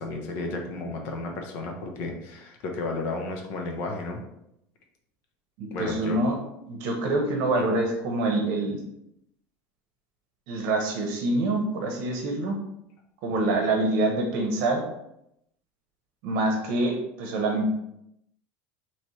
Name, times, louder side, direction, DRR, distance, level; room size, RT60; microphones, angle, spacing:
voice 1, 0.0-4.2 5.7-6.2 7.6-7.7 13.5-13.6, left 2 dB, 50° left, 3 dB, 0.8 m, -33 dB
voice 2, 5.6-6.4 6.7-8.8 10.5-12.6 13.2-14.8 16.2-17.7, right 2 dB, 60° right, 2 dB, 0.8 m, -26 dB
4.2 x 3.0 x 3.1 m, 0.80 s
cardioid pair, 165°, 5 cm